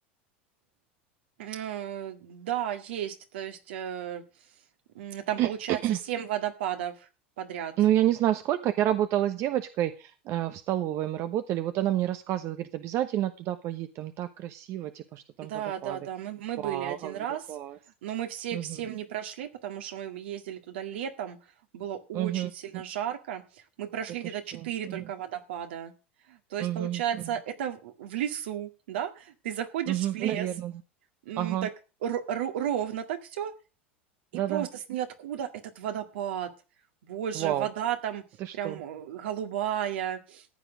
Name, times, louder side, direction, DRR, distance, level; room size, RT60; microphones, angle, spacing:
voice 1, 1.4-4.2 5.0-7.1 7.4-7.7 15.4-17.4 18.0-21.4 21.7-23.4 23.8-25.9 26.3-30.5 31.3-31.7 32.0-33.5 34.5-36.5 37.0-38.2 38.5-40.5, right 10 dB, 70° right, 6 dB, 1.9 m, -33 dB
voice 2, 5.4-6.0 7.8-15.5 15.8-16.0 16.6-17.8 18.5-18.8 22.1-22.8 24.2-25.1 26.6-27.3 29.9-30.7 31.4-31.7 34.3-34.7 37.3-37.7 38.4-38.8, right 12 dB, 45° right, 9 dB, 1.0 m, -29 dB
14.5 x 9.0 x 5.1 m, 0.34 s
hypercardioid pair, 85°, 6 cm